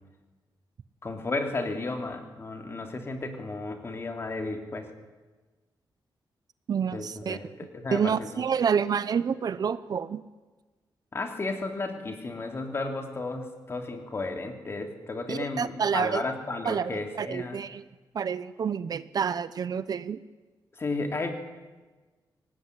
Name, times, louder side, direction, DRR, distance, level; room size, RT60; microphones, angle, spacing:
voice 1, 1.0-4.9 6.9-8.3 11.1-17.6 20.7-21.3, left 3 dB, 30° left, 5 dB, 3.1 m, -33 dB
voice 2, 6.7-7.4 7.9-10.2 15.3-16.2 16.6-17.8 18.1-20.2, right 7 dB, 55° right, 15 dB, 0.8 m, -28 dB
24.5 x 19.5 x 9.8 m, 1.3 s
wide cardioid pair, 165°, 8 cm